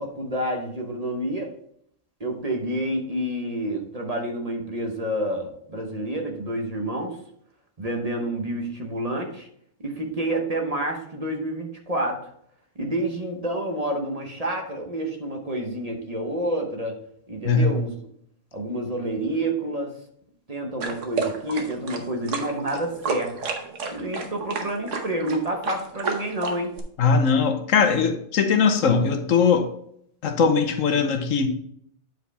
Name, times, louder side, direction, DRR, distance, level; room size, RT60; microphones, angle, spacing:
voice 1, 0.0-1.5 2.2-7.2 7.8-9.5 9.8-12.2 12.8-17.0 17.3-17.9 18.5-19.9 20.5-23.3 23.9-26.7, right 1 dB, 30° right, 1.0 m, -28 dB
voice 2, 17.4-17.7 27.0-29.7 30.2-31.5, left 5 dB, 90° left, 1.2 m, -20 dB
sound 1, 20.8-26.8, right 4 dB, 75° right, 1.4 m, -30 dB
9.2 x 4.9 x 3.4 m
omnidirectional pair, 1.3 m